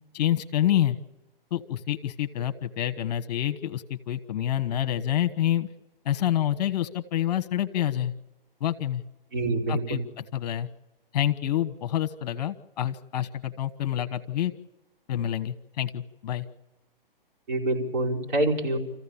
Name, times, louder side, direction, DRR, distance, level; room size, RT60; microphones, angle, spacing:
voice 1, 0.1-1.0 1.5-5.7 6.0-8.1 8.6-9.0 9.7-10.7 11.1-14.5 15.1-16.4, left 11 dB, 45° left, 9 dB, 1.2 m, -27 dB
voice 2, 9.3-10.0 17.5-18.8, right 2 dB, 55° right, -2 dB, 5.0 m, -26 dB
28.0 x 15.0 x 7.1 m, 1.0 s
hypercardioid pair, 130°, 29 cm